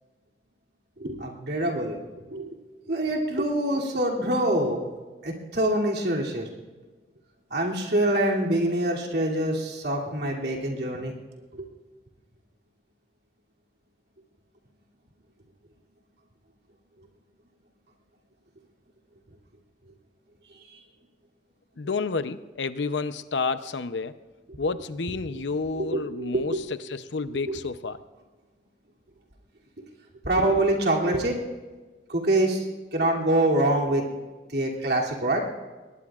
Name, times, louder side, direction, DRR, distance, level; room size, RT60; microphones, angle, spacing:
voice 1, 1.0-2.0 2.3-2.5 2.9-4.9 5.2-6.5 7.5-11.1 11.5-11.7 20.7-20.8 25.7-26.6 27.3-27.6 29.8-29.9 30.2-31.4 32.1-32.6 32.9-34.1 34.5-35.4, right 1 dB, 65° right, -1 dB, 2.8 m, -25 dB
voice 2, 21.8-24.1 24.6-28.0, left 4 dB, 85° left, 12 dB, 0.7 m, -30 dB
21.5 x 19.5 x 2.5 m, 1.3 s
head